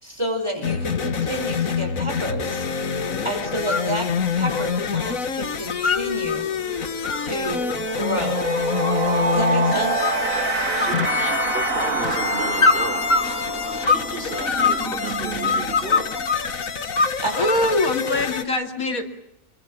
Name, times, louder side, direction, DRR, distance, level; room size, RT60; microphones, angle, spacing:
voice 1, 0.0-4.1 4.4-6.4 7.2-8.4 9.3-10.1 17.2-17.5, equal, 20° right, 3 dB, 5.6 m, -29 dB
sound 1, 0.6-18.4, left 6 dB, 75° left, 1.8 m, -27 dB
sound 2, 3.5-3.9 4.2-5.2 5.5-6.4 6.8-9.6 10.0-10.5 10.8-11.8 12.6-14.1 14.4-16.5 16.9-17.7, left 4 dB, 35° left, 1.4 m, -23 dB
sound 3, 5.9-6.1 6.4-16.9, right 4 dB, 75° right, 2.9 m, -27 dB
voice 2, 10.5-16.8, right 2 dB, 40° right, 6 dB, 4.0 m, -35 dB
voice 3, 17.3-19.0, left 2 dB, 90° left, 4 dB, 3.2 m, -23 dB
27.5 x 22.5 x 7.6 m, 0.82 s
omnidirectional pair, 1.4 m